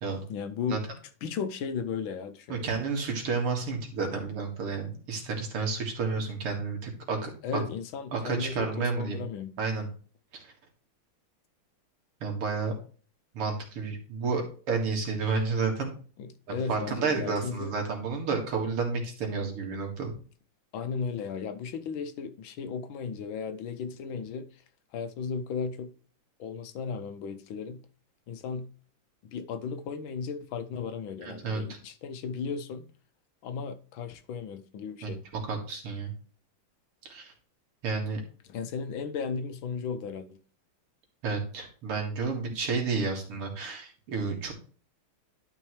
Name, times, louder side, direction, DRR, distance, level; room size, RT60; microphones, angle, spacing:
voice 1, 0.3-0.8 1.2-2.8 7.4-9.5 16.2-17.7 20.7-24.6 24.9-25.9 26.4-27.8 28.3-28.7 29.2-32.9 33.4-35.2 38.4-40.4, left 6 dB, 70° left, 1.5 m, -35 dB
voice 2, 2.5-7.6 8.1-9.2 9.6-9.9 10.3-10.4 12.2-12.7 13.3-15.9 16.5-20.1 31.2-31.6 35.0-35.1 35.5-36.1 37.0-37.3 37.8-38.2 41.2-44.5, right 4 dB, 85° right, 3.0 m, -31 dB
11.5 x 5.3 x 3.2 m
omnidirectional pair, 2.4 m